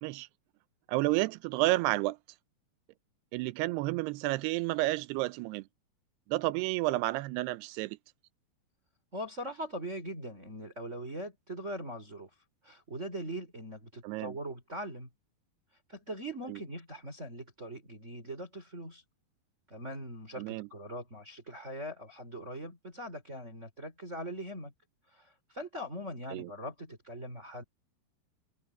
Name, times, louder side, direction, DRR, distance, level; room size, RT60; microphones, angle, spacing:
voice 1, 0.9-2.2 3.3-5.6 6.3-8.0 14.0-14.4 16.5-16.6 20.4-20.7 26.3-26.5, right 19 dB, 90° right, 2.7 m, -31 dB
voice 2, 9.1-12.3 12.6-15.1 15.9-19.0 19.7-24.7 25.1-27.6, equal, 15° right, 4.6 m, -41 dB
omnidirectional pair, 4.6 m